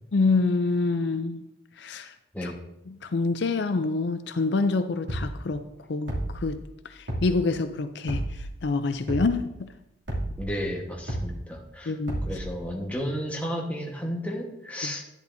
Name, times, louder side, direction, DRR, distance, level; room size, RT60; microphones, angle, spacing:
voice 1, 0.1-1.4 1.8-2.1 2.4-2.5 2.9-5.6 5.9-9.7 11.9-12.2 14.8-14.9, left 3 dB, 65° left, 10 dB, 0.4 m, -27 dB
sound 1, 5.1-5.3 6.1-6.5 7.1-7.3 8.1-8.5 9.1-9.3 10.1-10.5 11.1-11.3 12.1-12.5, right 1 dB, 75° right, 2.6 m, -30 dB
voice 2, 10.4-11.9 12.3-15.0, equal, 10° left, -1 dB, 1.2 m, -32 dB
10.5 x 10.5 x 2.6 m, 0.87 s
head